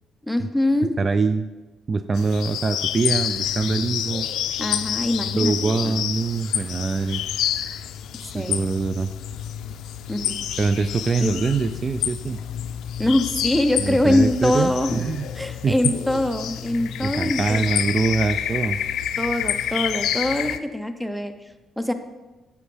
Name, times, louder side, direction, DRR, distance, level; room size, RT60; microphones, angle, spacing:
voice 1, 0.3-0.9 4.6-5.9 8.3-8.6 10.1-10.5 11.2-11.4 13.0-15.0 15.4-17.8 19.2-21.3 21.8-21.9, left 1 dB, 5° right, 8 dB, 0.7 m, -23 dB
voice 2, 1.0-1.5 1.9-4.3 5.4-7.2 8.3-9.1 10.6-12.4 13.8-15.3 15.6-15.9 17.0-18.8, right 4 dB, 35° right, 10 dB, 0.3 m, -24 dB
sound 1, 2.1-20.6, left 10 dB, 80° left, 0.4 m, -28 dB
9.7 x 6.9 x 3.3 m, 1.1 s
cardioid pair, 90°, 0 cm